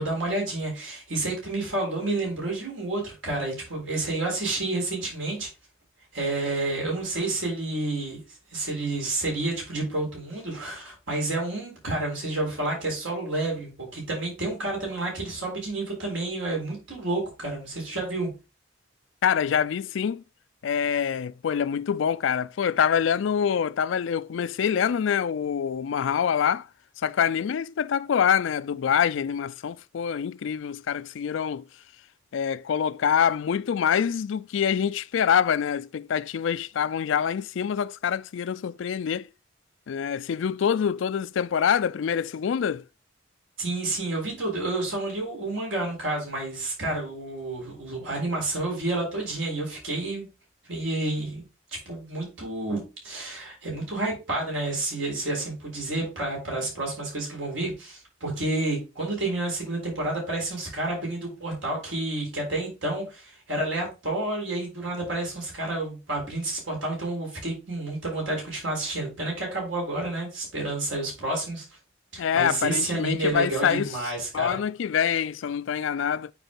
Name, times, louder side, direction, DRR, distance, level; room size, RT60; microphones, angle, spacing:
voice 1, 0.0-5.5 6.1-8.2 8.5-18.3 43.6-50.3 50.7-51.4 51.9-71.6 72.1-74.6, right 2 dB, 75° right, 3.9 m, -30 dB
voice 2, 19.2-20.2 20.6-26.7 27.0-31.6 32.3-39.3 39.9-42.8 72.2-73.9 74.3-76.3, left 8 dB, 70° left, 0.3 m, -25 dB
7.2 x 4.4 x 3.8 m
head